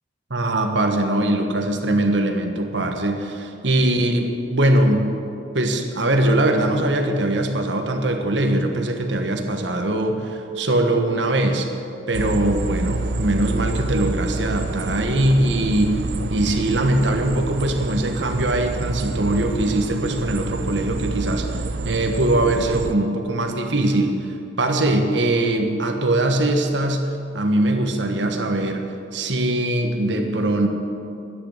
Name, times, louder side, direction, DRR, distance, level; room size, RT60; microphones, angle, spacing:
voice 1, 0.3-5.1 5.5-11.7 12.1-16.0 16.3-21.5 21.8-24.2 24.6-27.1 27.3-28.8 29.1-30.7, right 1 dB, 90° right, 4 dB, 1.4 m, -21 dB
sound 1, 12.1-22.9, right 2 dB, 65° right, 0.5 m, -27 dB
12.0 x 9.8 x 7.9 m, 2.7 s
head